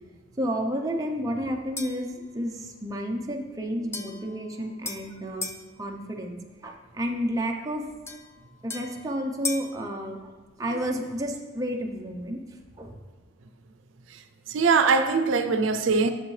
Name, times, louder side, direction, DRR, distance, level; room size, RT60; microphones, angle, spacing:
voice 1, 0.4-5.5 5.8-7.9 8.6-10.3 10.6-12.9, equal, 15° right, 0 dB, 0.6 m, -31 dB
sound 1, 1.8-2.1 3.9-5.7 8.1-9.8, left 3 dB, 15° left, 0.3 m, -37 dB
voice 2, 14.5-16.1, right 4 dB, 85° right, 9 dB, 0.5 m, -22 dB
8.6 x 6.3 x 3.2 m, 1.3 s
head